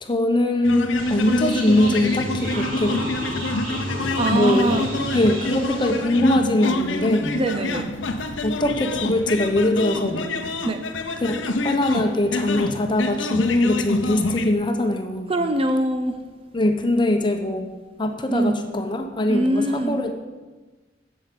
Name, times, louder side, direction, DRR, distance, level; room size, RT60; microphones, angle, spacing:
voice 1, 0.0-3.0 4.3-4.8 5.1-7.4 8.4-10.4 11.2-15.4 16.5-17.7 18.0-20.1, left 1 dB, 25° left, 5 dB, 0.9 m, -22 dB
sound 1, 0.6-14.5, left 2 dB, 90° left, 0.8 m, -27 dB
sound 2, 1.0-6.0, equal, 50° right, 3.2 m, -31 dB
voice 2, 4.2-4.9 7.4-7.9 10.7-10.8 15.3-16.1 18.3-18.6 19.3-20.0, right 1 dB, 30° right, 7 dB, 0.6 m, -22 dB
7.9 x 7.3 x 8.5 m, 1.3 s
head